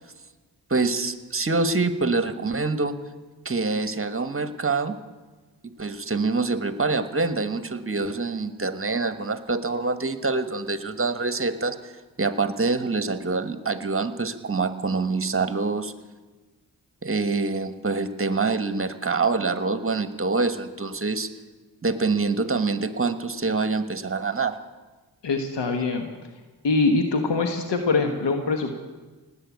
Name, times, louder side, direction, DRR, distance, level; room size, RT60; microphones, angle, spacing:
voice 1, 0.7-3.0 3.4-5.0 5.8-11.9 12.2-15.9 17.0-21.3 21.8-24.6, right 3 dB, 30° right, 11 dB, 1.3 m, -25 dB
voice 2, 25.2-26.1 26.6-28.8, left 3 dB, 85° left, 5 dB, 1.3 m, -23 dB
18.5 x 8.9 x 8.3 m, 1.3 s
cardioid pair, 50°, 41 cm